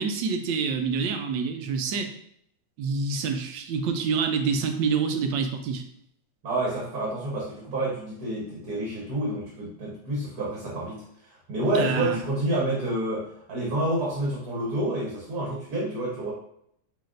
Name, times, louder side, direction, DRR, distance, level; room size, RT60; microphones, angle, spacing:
voice 1, 0.0-2.1 2.8-5.8 11.7-12.2, right 5 dB, 85° right, 6 dB, 1.3 m, -27 dB
voice 2, 6.4-16.3, right 1 dB, 60° right, -5 dB, 1.6 m, -29 dB
5.8 x 3.4 x 2.5 m, 0.71 s
omnidirectional pair, 1.9 m